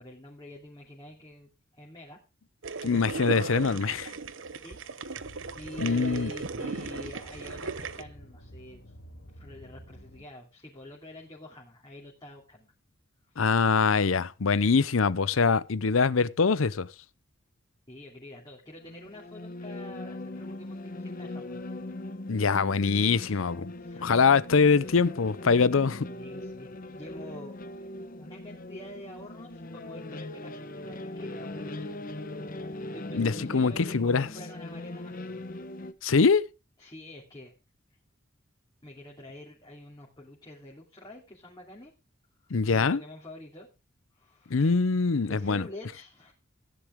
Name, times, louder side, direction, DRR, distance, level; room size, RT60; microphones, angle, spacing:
voice 1, 0.0-2.2 3.3-3.8 4.6-4.8 5.5-8.8 9.4-12.7 13.3-13.4 17.9-21.6 23.2-23.5 23.8-24.2 24.7-25.0 26.1-27.6 28.2-32.0 32.9-35.5 36.8-37.5 38.8-41.9 42.7-43.7 44.1-44.7 45.2-46.3, left 1 dB, 20° left, 2.8 m, -47 dB
sound 1, 2.6-8.0, right 3 dB, 70° right, 0.9 m, -36 dB
voice 2, 2.8-4.1 5.8-6.3 13.4-16.9 22.3-23.7 24.0-26.1 33.1-34.3 36.0-36.5 42.5-43.0 44.5-45.6, left 5 dB, 80° left, 0.7 m, -23 dB
sound 2, 5.1-10.3, equal, 65° left, 2.5 m, -50 dB
sound 3, 18.8-35.9, left 2 dB, 45° left, 1.0 m, -40 dB
15.0 x 10.0 x 3.6 m
head